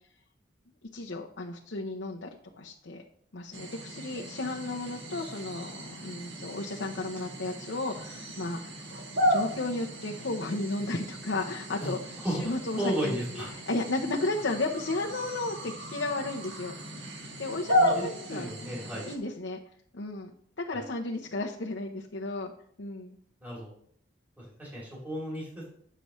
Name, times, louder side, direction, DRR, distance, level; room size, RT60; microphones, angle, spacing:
voice 1, 0.9-2.3 2.6-3.0 3.3-8.9 9.2-16.7 17.4-18.5 19.0-19.6 19.9-20.3 20.7-22.5 22.8-23.2, left 2 dB, 85° left, -1 dB, 0.8 m, -34 dB
sound 1, 3.5-19.2, equal, 80° right, 1.5 m, -34 dB
voice 2, 12.2-13.5 17.8-19.1 20.7-20.8 23.4-23.7 24.4-25.7, right 1 dB, 10° right, -5 dB, 2.9 m, -34 dB
10.0 x 6.8 x 3.1 m, 0.63 s
head